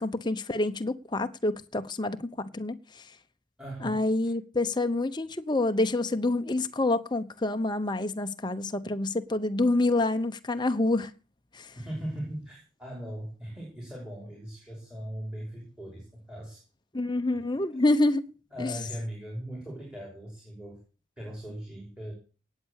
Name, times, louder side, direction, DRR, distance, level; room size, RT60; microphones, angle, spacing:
voice 1, 0.0-3.0 3.8-11.1 11.5-11.7 16.9-18.2 18.6-18.7, left 2 dB, 20° left, 0.8 m, -27 dB
voice 2, 3.6-4.1 11.8-16.6 18.5-20.8 21.2-22.1, equal, 5° right, 5.5 m, -39 dB
18.0 x 8.4 x 6.5 m
head